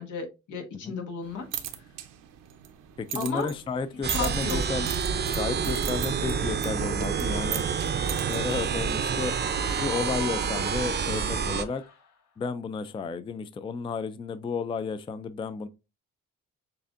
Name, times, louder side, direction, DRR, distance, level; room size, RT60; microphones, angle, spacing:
voice 1, 0.0-1.5 3.1-3.5 4.1-4.6, left 4 dB, 80° left, 1.4 m, -33 dB
sound 1, 1.2-9.3, right 10 dB, 90° right, 0.7 m, -40 dB
voice 2, 3.0-4.9 5.2-7.6 8.3-9.3 9.6-11.8 12.4-15.7, left 4 dB, 20° left, 0.3 m, -32 dB
sound 2, 4.0-11.6, right 6 dB, 35° right, 0.5 m, -28 dB
Screaming, 9.1-12.1, left 5 dB, 65° left, 1.1 m, -43 dB
6.7 x 2.6 x 2.5 m
cardioid pair, 90°, 30 cm